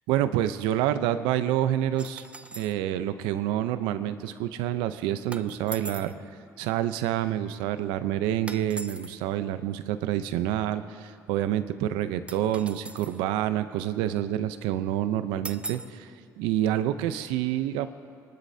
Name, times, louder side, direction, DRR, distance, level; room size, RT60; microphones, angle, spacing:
voice 1, 0.1-2.2 2.5-6.1 6.6-17.9, right 12 dB, 85° right, 11 dB, 0.7 m, -28 dB
Cutlery Fork Knife Spoon Metal Dropped On Floor Pack, 2.0-2.8 5.3-6.2 8.5-9.2 12.3-13.2 15.4-16.0, right 2 dB, 15° right, 0.5 m, -40 dB
25.0 x 12.0 x 2.8 m, 2.2 s
supercardioid pair, 75°, 8 cm